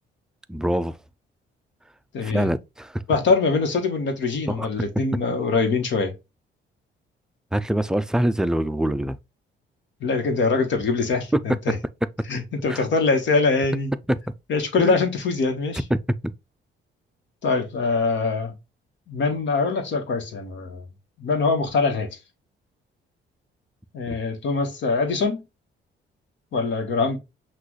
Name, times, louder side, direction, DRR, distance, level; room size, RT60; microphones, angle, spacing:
voice 1, 0.5-1.0 2.2-3.0 4.5-4.7 7.5-9.2 11.3-11.4 12.7-12.8 14.1-14.2 14.8-15.0 15.9-16.0 24.1-24.2, right 1 dB, 5° right, 0.3 m, -24 dB
voice 2, 2.1-2.5 3.1-6.1 10.0-11.8 12.3-13.9 14.5-15.8 17.4-18.5 19.1-20.8 21.2-22.1 23.9-25.4 26.5-27.2, left 4 dB, 70° left, 1.3 m, -23 dB
6.0 x 2.5 x 3.0 m
cardioid pair, 90°, 20 cm